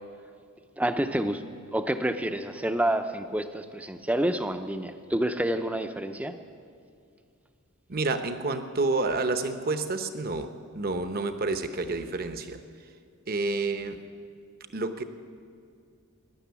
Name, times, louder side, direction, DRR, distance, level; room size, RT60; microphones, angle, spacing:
voice 1, 0.8-1.4 1.7-6.3, right 1 dB, 5° right, 8 dB, 0.6 m, -28 dB
voice 2, 7.9-12.6 13.3-14.0 14.7-15.0, right 3 dB, 40° right, 9 dB, 0.8 m, -29 dB
18.0 x 11.0 x 7.0 m, 2.3 s
head